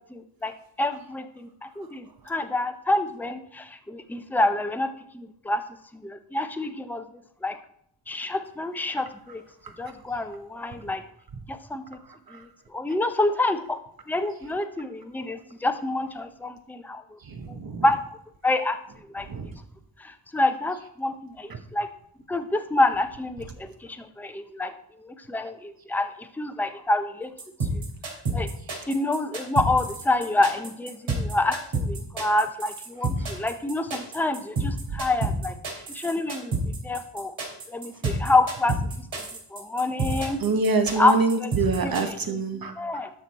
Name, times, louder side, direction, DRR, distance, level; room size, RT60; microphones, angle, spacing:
voice 1, 0.1-0.5 0.8-5.6 5.9-7.1 7.4-7.6 8.1-9.4 9.8-11.0 11.5-12.0 12.3-13.8 14.1-17.2 17.5-17.6 17.8-18.2 18.4-18.8 19.1-19.3 20.0-21.9 22.3-24.7 25.0-27.3 27.6-27.8 28.3-28.5 28.9-35.5 35.9-37.3 37.7-38.8 39.5-40.4 40.9-41.5 41.8-42.4 42.8-43.1, left 2 dB, 5° left, 8 dB, 0.6 m, -27 dB
voice 2, 17.3-17.8 19.3-19.5 34.9-35.0 40.4-42.7, right 4 dB, 50° right, 7 dB, 1.1 m, -26 dB
sound 1, 27.4-42.0, right 3 dB, 75° right, 3.1 m, -29 dB
12.0 x 6.2 x 4.1 m, 0.69 s
wide cardioid pair, 140°, 45 cm